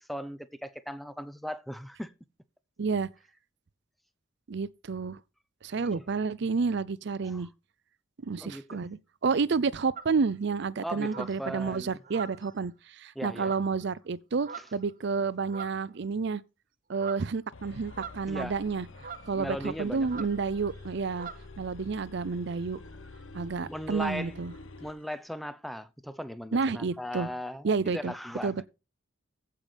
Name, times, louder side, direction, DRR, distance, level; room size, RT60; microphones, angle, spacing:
voice 1, 0.0-2.1 5.9-6.0 7.2-7.5 8.3-8.8 10.8-11.9 13.2-13.5 18.3-18.6 19.3-20.2 23.6-24.3 24.8-28.7, equal, ahead, 0.7 m, -38 dB
voice 2, 4.5-5.2 5.6-7.5 8.2-16.4 16.9-18.9 19.3-21.3 21.6-22.8 23.3-24.5 26.5-27.3 27.6-28.1 28.4-28.7, right 4 dB, 60° right, 0.5 m, -30 dB
sound 1, 10.0-10.2 11.1-11.4 12.0-12.6 13.3-13.8 14.4-14.8 15.4-15.9 16.9-17.3 17.9-18.5 19.0-19.3 20.0-20.4 20.6-20.8 21.1-21.5, right 6 dB, 45° right, 0.8 m, -43 dB
sound 2, 17.5-25.0, left 3 dB, 85° left, 1.1 m, -48 dB
15.5 x 5.8 x 5.2 m
head